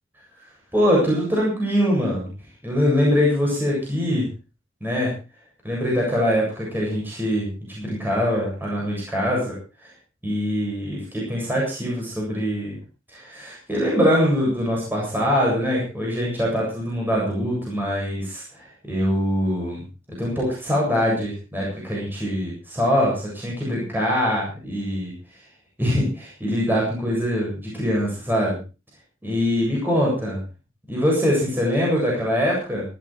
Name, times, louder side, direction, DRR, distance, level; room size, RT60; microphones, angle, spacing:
voice 1, 0.7-2.3 2.6-4.3 4.8-5.1 5.6-9.6 10.2-12.8 13.1-19.8 20.2-25.1 25.8-28.6 29.2-30.4 30.9-32.8, equal, 10° right, -4 dB, 7.8 m, -23 dB
17.5 x 13.0 x 4.5 m, 0.33 s
head